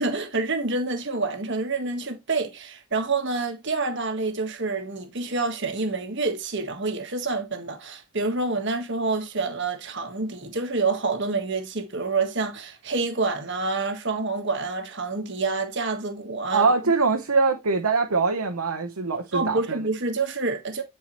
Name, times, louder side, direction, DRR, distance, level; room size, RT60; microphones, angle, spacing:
voice 1, 0.0-16.7 19.3-20.8, right 3 dB, 50° right, 1.4 m, -27 dB
voice 2, 16.5-19.8, right 4 dB, 80° right, 1.0 m, -23 dB
10.5 x 4.6 x 3.0 m
head